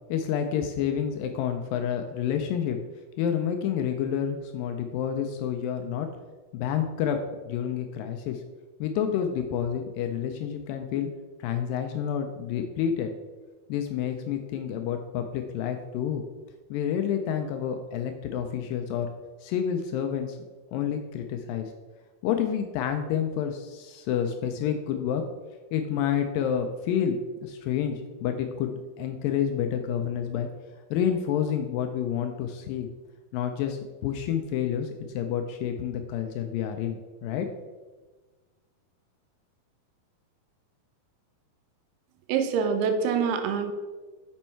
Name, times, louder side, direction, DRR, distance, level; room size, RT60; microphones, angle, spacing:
voice 1, 0.1-2.8 3.2-6.1 6.5-7.2 7.5-8.4 8.8-11.1 11.4-13.1 13.7-16.2 16.7-19.1 19.4-20.4 20.7-21.7 22.2-25.2 25.7-28.7 29.0-30.5 30.9-32.9 33.3-34.9 35.2-37.5, left 8 dB, 85° left, 5 dB, 2.0 m, -29 dB
voice 2, 42.3-43.7, right 6 dB, 85° right, 6 dB, 2.7 m, -25 dB
7.1 x 5.4 x 4.4 m, 1.3 s
omnidirectional pair, 4.5 m